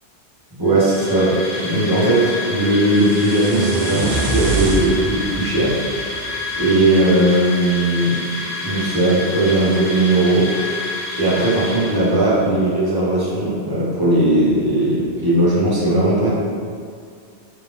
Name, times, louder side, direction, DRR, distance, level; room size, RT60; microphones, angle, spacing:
sound 1, 0.6-12.5, left 2 dB, 80° left, 1.4 m, -29 dB
voice 1, 0.6-5.8 6.5-8.2 8.6-10.5 11.2-16.3, right 1 dB, 20° right, -7 dB, 0.9 m, -18 dB
sound 2, 2.9-7.0, right 3 dB, 65° right, 0.8 m, -25 dB
3.5 x 3.5 x 3.1 m, 2.2 s
omnidirectional pair, 1.2 m